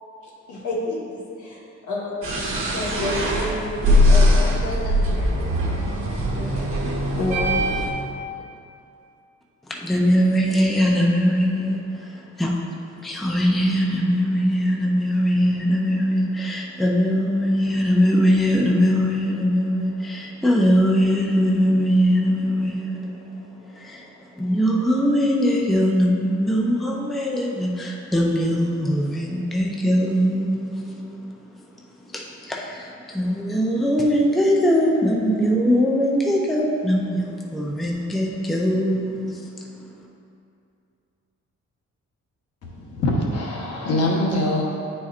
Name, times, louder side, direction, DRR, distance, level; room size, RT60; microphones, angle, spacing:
voice 1, 0.2-2.2 2.6-5.7 6.4-7.7, left 2 dB, 85° left, -5 dB, 1.4 m, -30 dB
sound 1, 2.2-7.9, left 1 dB, 45° right, 1.2 m, -21 dB
voice 2, 9.6-12.5 13.0-31.6 32.0-40.1, equal, ahead, -2 dB, 0.4 m, -21 dB
voice 3, 42.6-44.6, left 1 dB, 60° left, -2 dB, 1.0 m, -23 dB
9.9 x 4.3 x 2.4 m, 2.5 s
wide cardioid pair, 175°, 29 cm